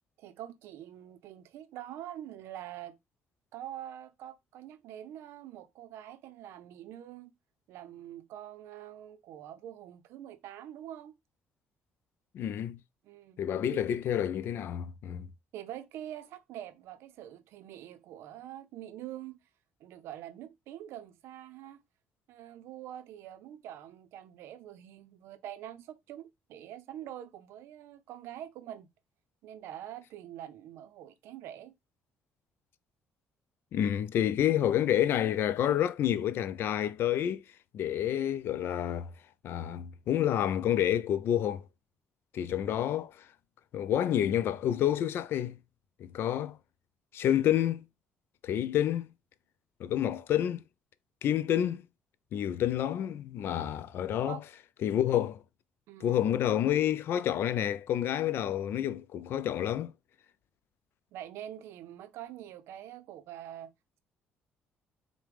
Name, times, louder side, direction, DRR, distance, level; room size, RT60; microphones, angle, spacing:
voice 1, 0.2-3.0 3.5-7.3 7.7-11.2 13.0-13.4 13.7-13.8 15.5-19.4 19.8-21.8 22.3-28.9 29.4-31.7 51.6-51.7 54.3-54.4 55.9-56.2 61.1-63.7, right 11 dB, 80° right, 0.5 m, -45 dB
voice 2, 12.3-12.8 13.4-15.3 33.7-37.4 37.7-39.1 39.4-41.6 42.3-43.3 43.7-45.6 46.0-46.6 47.1-47.8 48.4-49.1 49.8-50.6 51.2-51.9 52.3-54.4 54.8-55.4 56.0-59.9, left 10 dB, 65° left, 0.4 m, -29 dB
4.8 x 2.1 x 3.3 m
cardioid pair, 90°, 4 cm